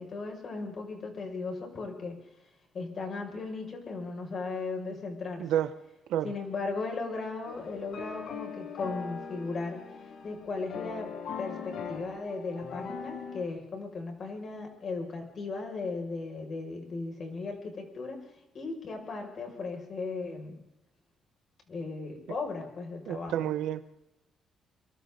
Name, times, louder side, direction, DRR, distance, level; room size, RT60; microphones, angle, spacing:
voice 1, 0.0-2.2 2.7-5.5 6.2-9.8 10.2-18.2 18.5-20.6 21.7-23.5, left 3 dB, 50° left, 3 dB, 6.3 m, -37 dB
voice 2, 5.4-5.7 6.1-6.3 23.1-23.9, right 11 dB, 85° right, 12 dB, 1.1 m, -30 dB
sound 1, 7.4-13.4, left 6 dB, 75° left, 2.7 m, -40 dB
27.0 x 24.0 x 4.0 m, 0.90 s
cardioid pair, 90°, 0 cm